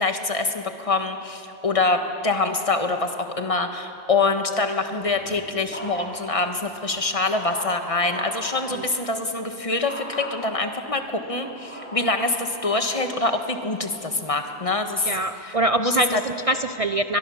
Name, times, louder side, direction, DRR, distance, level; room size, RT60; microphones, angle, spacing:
voice 1, 0.0-16.2, left 3 dB, 25° left, 6 dB, 1.4 m, -25 dB
sound 1, 5.0-6.4 6.8-8.5 9.9-10.3 11.0-12.9 13.5-13.9, equal, 10° left, 4.0 m, -38 dB
voice 2, 15.1-17.2, right 1 dB, 50° right, 9 dB, 0.4 m, -24 dB
23.5 x 21.5 x 7.2 m, 2.8 s
omnidirectional pair, 1.3 m